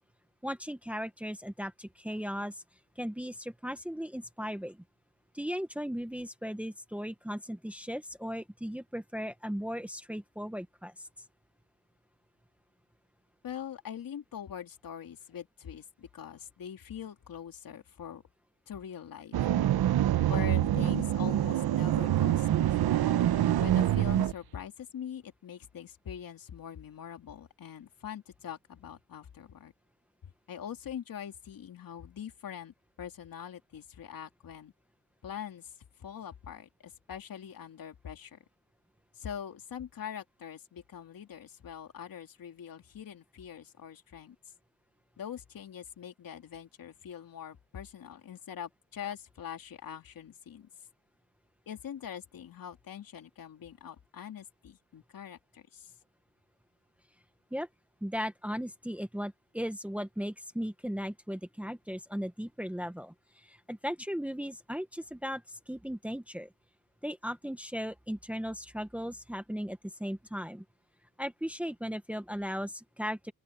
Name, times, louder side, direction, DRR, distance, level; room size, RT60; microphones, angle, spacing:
voice 1, 0.4-2.6 3.0-4.8 5.3-11.1 57.5-57.7 58.0-66.5 67.0-70.6 71.2-73.3, equal, 5° right, 1.2 m, -37 dB
voice 2, 13.4-18.2 18.7-19.4 20.3-23.0 23.5-29.7 30.2-34.7 35.2-35.7 36.0-38.4 39.2-44.4 45.2-50.7 51.7-55.9, left 9 dB, 65° left, 2.9 m, -43 dB
sound 1, 19.3-24.3, right 12 dB, 80° right, 0.9 m, -26 dB
open air
wide cardioid pair, 155°, 37 cm